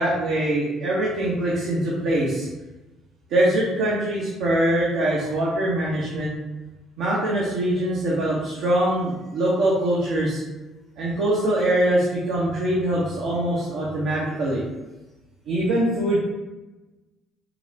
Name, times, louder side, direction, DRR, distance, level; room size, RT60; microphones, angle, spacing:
voice 1, 0.0-2.5 3.3-6.3 7.0-10.4 11.0-14.6 15.5-16.2, right 1 dB, 75° right, -6 dB, 0.8 m, -23 dB
5.4 x 2.1 x 2.7 m, 1.1 s
supercardioid pair, 65°, 0 cm